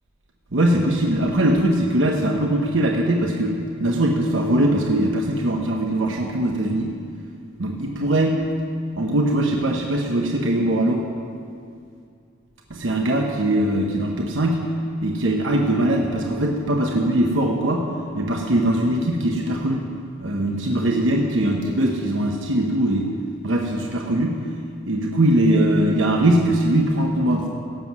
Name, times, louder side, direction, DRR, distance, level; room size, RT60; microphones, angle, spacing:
voice 1, 0.5-6.9 7.6-8.4 9.0-11.0 12.7-14.6 15.0-17.8 18.1-19.8 20.2-23.1 23.4-24.4 24.9-27.5, right 1 dB, 85° right, 1 dB, 1.1 m, -21 dB
17.5 x 7.6 x 6.0 m, 2.4 s
head